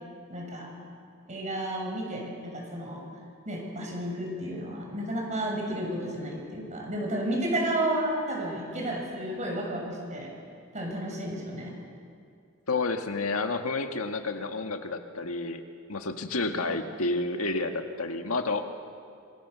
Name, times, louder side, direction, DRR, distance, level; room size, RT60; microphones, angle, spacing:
voice 1, 0.3-0.7 1.3-3.0 3.4-10.3 10.7-11.7 16.7-16.8, right 1 dB, 35° right, 0 dB, 6.8 m, -32 dB
voice 2, 12.7-15.6 15.9-18.6, left 3 dB, 85° left, 5 dB, 1.8 m, -30 dB
26.0 x 25.0 x 7.0 m, 2.4 s
head